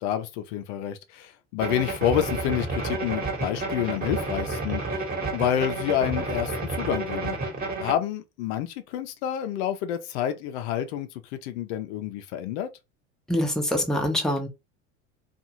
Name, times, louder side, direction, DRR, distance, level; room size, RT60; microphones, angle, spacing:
voice 1, 0.0-5.0 5.3-7.4 7.8-12.7, left 10 dB, 70° left, 0.6 m, -29 dB
sound 1, 1.6-7.9, right 3 dB, 25° right, 1.3 m, -30 dB
voice 2, 13.3-14.5, left 1 dB, ahead, 0.8 m, -25 dB
2.6 x 2.4 x 2.9 m
supercardioid pair, 100°, 35 cm